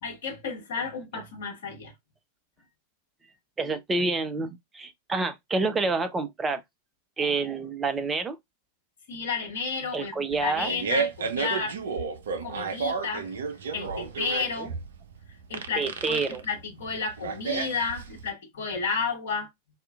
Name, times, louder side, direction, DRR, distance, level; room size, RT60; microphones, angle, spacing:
voice 1, 0.0-1.9 9.1-11.8 12.4-13.3 13.7-14.7 15.5-19.5, left 4 dB, 55° left, 1.0 m, -32 dB
voice 2, 3.6-6.6 7.2-8.4 9.9-10.7 14.6-14.7 15.8-16.4, right 3 dB, 15° right, 0.6 m, -28 dB
Fart, 10.3-18.3, right 5 dB, 65° right, 0.5 m, -32 dB
4.2 x 2.4 x 2.4 m
figure-of-eight pair, 90°, 0 cm